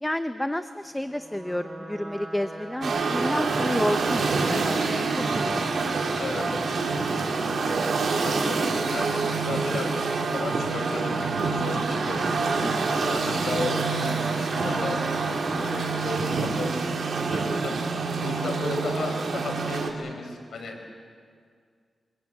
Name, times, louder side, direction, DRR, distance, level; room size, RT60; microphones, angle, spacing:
voice 1, 0.0-5.5 5.8-6.0 6.4-6.6 6.9-7.0 12.6-13.0, left 1 dB, 10° left, 10 dB, 0.8 m, -31 dB
sound 1, 0.9-17.2, right 1 dB, 35° right, 7.3 m, -40 dB
sound 2, 2.8-19.9, right 4 dB, 70° right, 3.0 m, -27 dB
voice 2, 8.2-12.3 12.9-15.0 15.6-17.7 18.2-20.8, left 3 dB, 75° left, 3 dB, 4.9 m, -34 dB
25.0 x 19.5 x 8.5 m, 2.1 s
cardioid pair, 70°, 0 cm